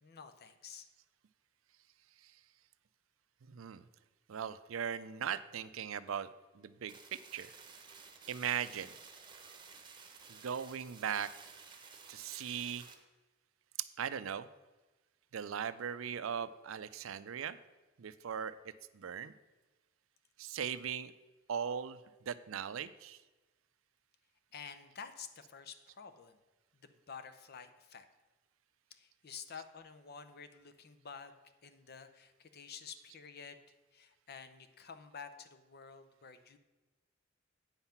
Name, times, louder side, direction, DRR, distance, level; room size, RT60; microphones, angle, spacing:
voice 1, 0.0-0.9 24.5-26.4 27.1-28.1 28.9-31.3 31.6-33.6 33.9-36.6, left 6 dB, 55° left, 10 dB, 0.7 m, -50 dB
voice 2, 3.4-3.8 4.3-6.3 6.5-7.5 8.3-8.9 10.3-11.3 12.1-12.9 14.0-14.5 15.3-17.6 18.0-18.5 18.9-19.3 20.4-21.1 21.5-22.0 22.3-23.2, right 8 dB, 85° right, 14 dB, 0.5 m, -39 dB
sound 1, 6.9-12.9, right 5 dB, 25° right, 1.0 m, -54 dB
8.9 x 5.7 x 5.8 m, 1.2 s
head